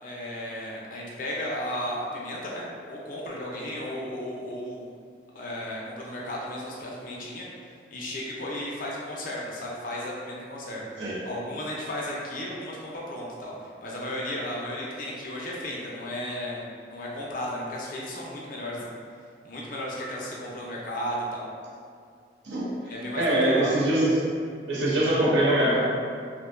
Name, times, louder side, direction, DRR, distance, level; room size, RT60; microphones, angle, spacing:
voice 1, 0.0-4.9 5.3-7.5 7.9-18.9 19.4-21.4 22.9-23.8, left 1 dB, 45° left, -4 dB, 0.4 m, -34 dB
voice 2, 23.2-24.3 24.7-25.8, right 1 dB, 70° right, -5 dB, 0.5 m, -23 dB
2.5 x 2.1 x 2.3 m, 2.2 s
head